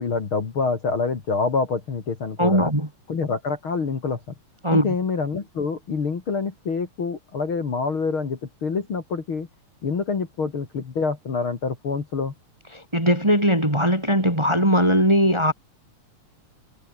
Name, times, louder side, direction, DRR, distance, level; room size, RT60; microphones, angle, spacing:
voice 1, 0.0-2.7 3.1-4.2 4.7-9.5 9.8-12.3, left 4 dB, 40° left, 3.1 m, -26 dB
voice 2, 2.4-2.9 4.6-4.9 12.7-15.5, equal, 10° right, 3.3 m, -19 dB
omnidirectional pair, 3.7 m